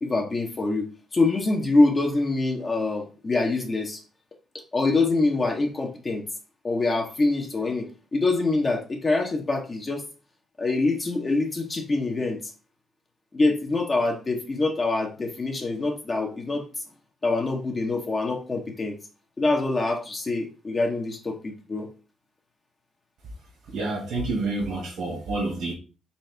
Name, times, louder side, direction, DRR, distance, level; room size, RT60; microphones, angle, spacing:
voice 1, 0.0-4.0 4.7-6.2 6.6-10.1 10.6-12.5 13.3-16.7 17.2-19.0 19.4-21.9, left 3 dB, 30° left, 2 dB, 0.9 m, -25 dB
voice 2, 23.7-25.7, right 2 dB, 75° right, -2 dB, 1.5 m, -28 dB
4.2 x 3.4 x 3.3 m, 0.33 s
cardioid pair, 90°, 0 cm